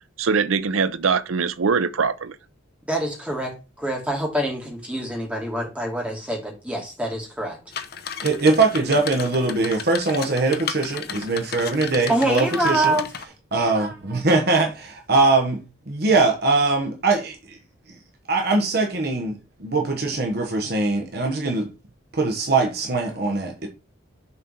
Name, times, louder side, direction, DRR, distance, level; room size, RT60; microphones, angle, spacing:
voice 1, 0.2-2.4, right 5 dB, 80° right, 0.6 m, -22 dB
voice 2, 2.9-7.6 12.1-13.0, right 1 dB, 5° right, 2.4 m, -25 dB
sound 1, 7.7-13.2, left 7 dB, 50° left, 0.7 m, -34 dB
voice 3, 8.2-13.0 13.5-15.6 15.9-17.6 17.9-18.0 18.3-21.7 22.1-23.7, right 3 dB, 50° right, 1.3 m, -22 dB
6.7 x 4.4 x 5.5 m
head